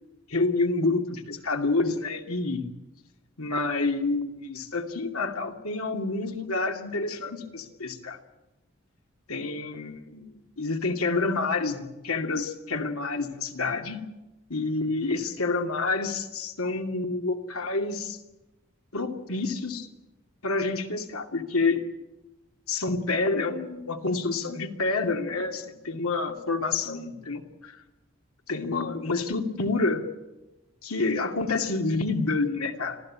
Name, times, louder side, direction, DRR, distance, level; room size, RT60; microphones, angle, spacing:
voice 1, 0.3-2.7 3.4-8.2 9.3-14.0 14.5-18.2 18.9-19.9 20.4-21.8 22.7-27.8 28.5-30.0 30.8-33.0, left 3 dB, 90° left, 5 dB, 2.5 m, -28 dB
26.0 x 15.5 x 8.7 m, 1.0 s
head